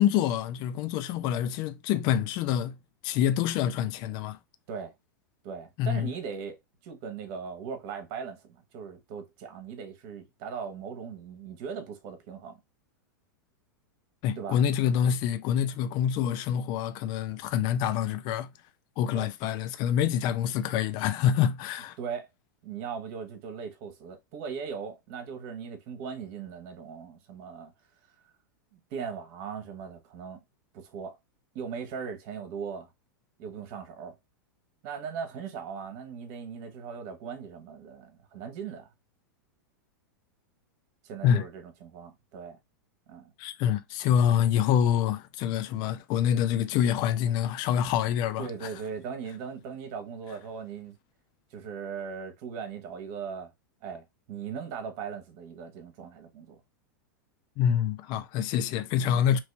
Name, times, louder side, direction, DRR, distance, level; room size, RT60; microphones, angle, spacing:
voice 1, 0.0-2.8 3.0-4.4 5.8-6.1 14.2-18.5 19.0-22.0 41.2-41.5 43.4-48.7 57.6-59.4, left 9 dB, 45° left, 0.4 m, -26 dB
voice 2, 5.4-6.6 6.8-12.6 14.4-14.6 19.1-19.3 22.0-22.3 22.6-27.7 28.7-30.4 30.7-31.2 31.5-32.9 33.4-34.1 34.8-38.9 41.0-42.6 43.1-43.3 48.4-51.0 51.5-53.5 53.8-56.6 59.0-59.2, right 6 dB, 50° right, 1.2 m, -39 dB
3.0 x 2.8 x 3.3 m
hypercardioid pair, 110°, 11 cm